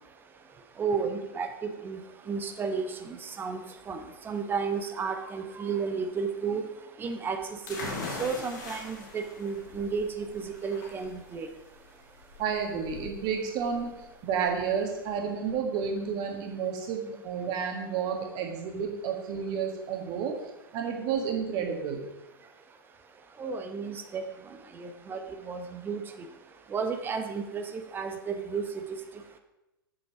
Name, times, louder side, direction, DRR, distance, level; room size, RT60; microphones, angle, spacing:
voice 1, 0.8-2.0 2.3-3.6 3.9-6.7 7.0-7.4 8.2-11.5 23.4-24.2 24.8-25.2 25.4-26.0 26.7-28.6, right 5 dB, 15° right, 7 dB, 0.7 m, -32 dB
sound 1, 7.7-15.1, left 3 dB, 50° left, 1.9 m, -42 dB
voice 2, 12.4-13.9 14.2-20.3 20.7-22.0, right 6 dB, 35° right, 3 dB, 1.6 m, -31 dB
7.2 x 6.3 x 5.1 m, 0.99 s
figure-of-eight pair, 100°, 12 cm